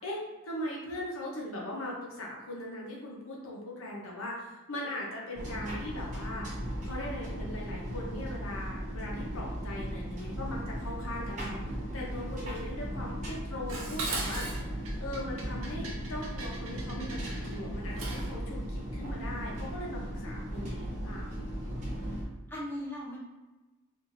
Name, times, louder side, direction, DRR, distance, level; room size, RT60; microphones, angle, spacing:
voice 1, 0.0-6.5 6.8-21.3, left 1 dB, 70° left, -3 dB, 0.9 m, -40 dB
sound 1, 5.3-22.2, equal, 35° right, 1.1 m, -37 dB
Dishes pots and pans, 13.7-18.4, right 3 dB, 75° right, 0.6 m, -39 dB
voice 2, 22.0-23.2, left 1 dB, 10° left, -6 dB, 0.7 m, -40 dB
4.5 x 2.7 x 2.6 m, 1.1 s
head